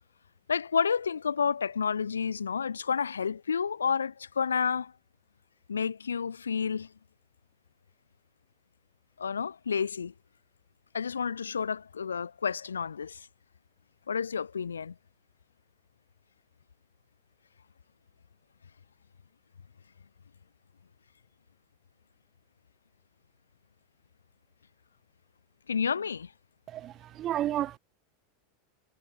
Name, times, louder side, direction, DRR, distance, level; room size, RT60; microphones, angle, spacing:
voice 1, 0.5-4.9 5.7-6.9 9.2-10.1 10.9-13.3 14.1-14.9 25.7-26.3, left 6 dB, 80° left, 3.9 m, -30 dB
voice 2, 26.7-27.8, right 12 dB, 35° right, 2.2 m, -32 dB
figure-of-eight pair, 90°, 0 cm